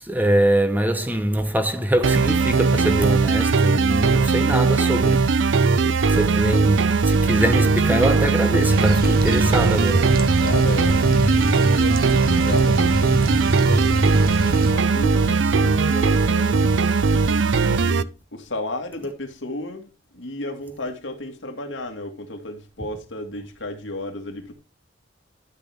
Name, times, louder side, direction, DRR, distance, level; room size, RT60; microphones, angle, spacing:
voice 1, 0.0-10.4, right 1 dB, 10° right, 0.9 m, -23 dB
sound 1, 2.0-18.0, right 4 dB, 75° right, 0.6 m, -19 dB
sound 2, 8.7-14.7, right 1 dB, 50° right, 1.3 m, -24 dB
voice 2, 10.4-24.5, left 1 dB, 75° left, 2.1 m, -34 dB
12.0 x 6.0 x 3.5 m
head